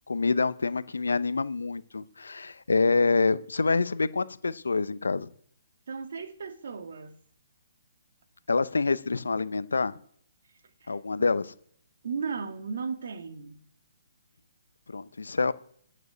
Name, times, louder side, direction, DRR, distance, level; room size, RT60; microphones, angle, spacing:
voice 1, 0.1-5.3 8.5-10.0 10.9-11.5 14.9-15.5, left 4 dB, 85° left, 0.8 m, -26 dB
voice 2, 5.9-7.2 10.8-11.0 12.0-13.6, right 5 dB, 65° right, 1.7 m, -35 dB
9.3 x 7.5 x 8.8 m
hypercardioid pair, 140°, 0 cm